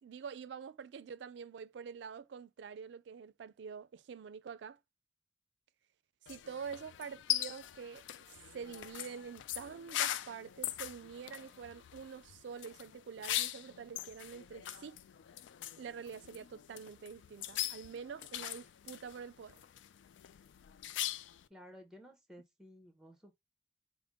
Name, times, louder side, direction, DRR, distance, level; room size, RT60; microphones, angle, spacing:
voice 1, 0.0-4.8 6.3-8.0 8.5-15.0 15.8-19.6, right 6 dB, 80° right, 0.3 m, -46 dB
sound 1, 6.3-21.5, left 12 dB, 90° left, 0.3 m, -41 dB
voice 2, 21.5-23.4, equal, 5° right, 0.7 m, -55 dB
5.0 x 2.0 x 3.5 m
head